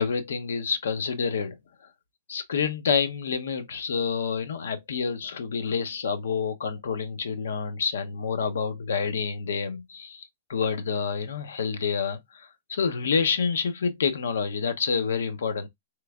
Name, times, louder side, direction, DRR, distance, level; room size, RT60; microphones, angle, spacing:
voice 1, 0.0-1.6 2.3-15.7, left 6 dB, 85° left, 0.6 m, -28 dB
3.2 x 3.1 x 2.3 m
hypercardioid pair, 150°, 0 cm